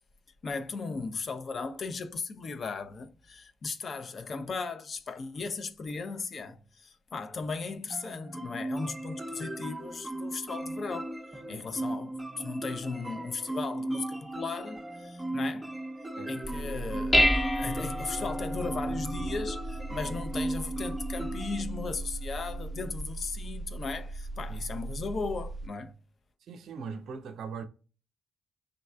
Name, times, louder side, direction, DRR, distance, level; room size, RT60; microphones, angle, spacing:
voice 1, 0.4-11.2 11.5-15.7 16.3-25.9, left 4 dB, 50° left, 0.6 m, -37 dB
sound 1, 7.9-21.6, right 1 dB, 15° right, 0.6 m, -37 dB
Dishes pots and pans, 16.4-25.7, equal, 15° left, 0.8 m, -32 dB
voice 2, 26.4-27.6, right 5 dB, 65° right, 0.5 m, -40 dB
5.2 x 3.2 x 2.2 m
hypercardioid pair, 40°, 0 cm